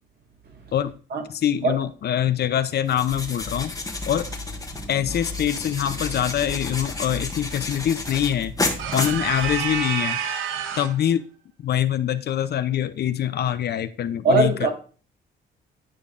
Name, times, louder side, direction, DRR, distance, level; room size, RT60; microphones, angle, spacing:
voice 1, 1.3-3.7 4.1-4.3 4.9-8.5 8.9-10.2 10.8-11.2 11.6-14.7, left 10 dB, 55° left, 0.5 m, -24 dB
sound 1, 2.9-9.9, left 3 dB, 15° left, 1.2 m, -31 dB
voice 2, 8.8-9.2 14.2-14.7, right 3 dB, 55° right, 1.7 m, -22 dB
sound 2, 8.8-11.0, right 8 dB, 85° right, 0.7 m, -28 dB
9.8 x 5.1 x 2.5 m
cardioid pair, 90°, 20 cm